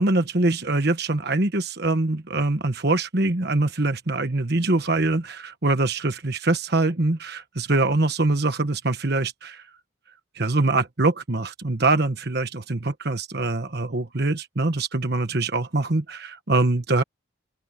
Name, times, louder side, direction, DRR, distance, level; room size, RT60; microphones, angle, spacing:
voice 1, 0.0-9.6 10.3-17.0, right 2 dB, 50° right, 1.3 m, -23 dB
open air
head